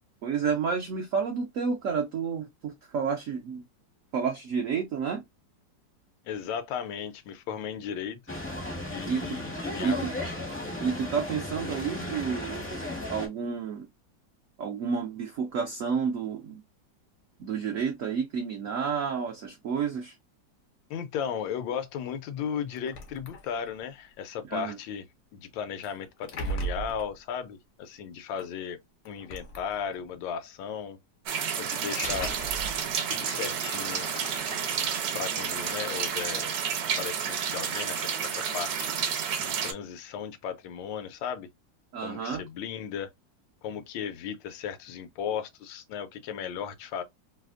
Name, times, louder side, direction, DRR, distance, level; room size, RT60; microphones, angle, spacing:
voice 1, 0.2-3.7 4.1-5.2 9.1-9.4 9.8-10.1 10.8-12.6 13.1-13.9 14.6-16.6 17.4-20.2 24.5-24.8 41.9-42.5, right 6 dB, 85° right, 0.7 m, -30 dB
voice 2, 6.2-8.4 8.9-10.0 20.9-25.0 25.3-28.8 29.0-31.0 31.6-32.3 33.1-34.1 35.1-36.6 37.0-38.9 39.4-41.5 42.0-43.1 43.6-47.0, left 8 dB, 85° left, 1.3 m, -36 dB
sound 1, 8.3-13.3, left 1 dB, 15° left, 0.4 m, -35 dB
sound 2, 22.7-23.9 25.8-27.2 28.4-28.5 29.1-30.1 31.7-33.0 33.2-34.9 35.4-37.0, right 2 dB, 70° left, 0.7 m, -39 dB
sound 3, 31.3-39.7, right 7 dB, 70° right, 1.0 m, -30 dB
3.2 x 2.4 x 2.4 m
omnidirectional pair, 2.0 m